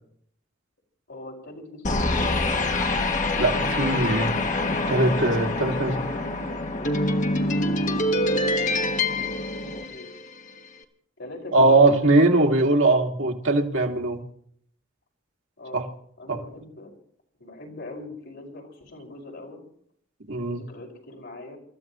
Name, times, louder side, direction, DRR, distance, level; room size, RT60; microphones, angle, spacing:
voice 1, 1.1-2.4 5.3-7.1 8.2-9.2 9.5-10.1 11.2-12.6 15.6-15.9 16.2-16.9 17.4-19.6 20.5-21.6, left 2 dB, 65° left, 0 dB, 5.4 m, -41 dB
sound 1, 1.8-10.4, left 2 dB, 40° left, 1.4 m, -25 dB
voice 2, 3.4-4.4 4.9-6.0 11.5-14.2 15.7-15.8 16.3-16.4 20.3-20.6, right 2 dB, 85° right, 1 dB, 2.0 m, -20 dB
28.5 x 14.0 x 3.0 m, 0.63 s
head